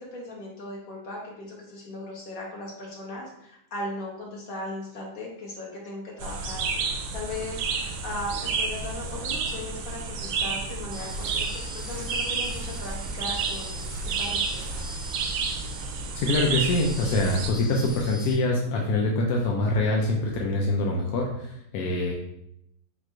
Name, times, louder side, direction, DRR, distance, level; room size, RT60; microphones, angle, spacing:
voice 1, 0.0-11.5 11.7-14.9, left 1 dB, 50° left, -4 dB, 1.7 m, -38 dB
sound 1, 6.2-17.5, right 4 dB, 80° right, 1.3 m, -31 dB
sound 2, 10.9-16.3 16.6-18.3, right 1 dB, 65° right, 0.5 m, -40 dB
voice 2, 16.1-22.1, left 2 dB, 70° left, 0 dB, 0.9 m, -25 dB
4.6 x 2.5 x 4.5 m, 0.77 s
omnidirectional pair, 2.1 m